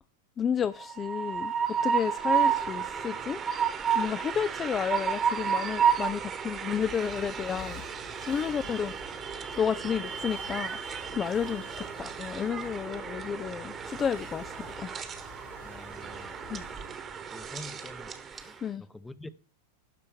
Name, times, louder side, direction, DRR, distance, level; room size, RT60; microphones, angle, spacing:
voice 1, 0.4-1.5 1.8-3.4 3.9-7.8 8.2-8.9 9.6-10.8 11.1-11.7 12.0-14.9 16.5-16.6 18.6-18.8, left 7 dB, 25° left, 0.4 m, -31 dB
Train, 0.8-18.6, right 7 dB, 25° right, 1.2 m, -32 dB
sound 1, 6.7-17.0, left 4 dB, 65° left, 4.8 m, -50 dB
voice 2, 15.6-16.4 16.9-17.0 17.3-19.3, left 2 dB, 5° left, 0.8 m, -47 dB
12.0 x 4.3 x 7.1 m
figure-of-eight pair, 90°, 0 cm